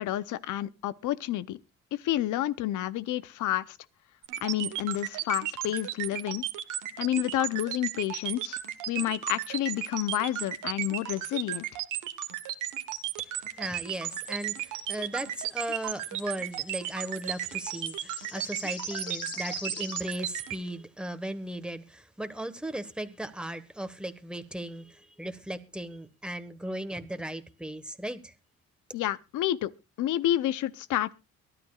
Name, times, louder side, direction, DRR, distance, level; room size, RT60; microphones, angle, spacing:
voice 1, 0.0-1.6 1.9-3.8 4.4-6.4 7.0-8.6 8.9-11.7 28.9-29.7 30.0-31.1, left 13 dB, 80° left, 0.7 m, -29 dB
sound 1, 4.2-20.6, right 13 dB, 90° right, 1.3 m, -34 dB
sound 2, 12.4-13.0 13.8-14.7 15.0-20.1, left 4 dB, 40° left, 7.1 m, -44 dB
voice 2, 13.3-28.3, right 1 dB, 5° right, 1.3 m, -37 dB
23.0 x 12.0 x 2.4 m
cardioid pair, 90°, 30 cm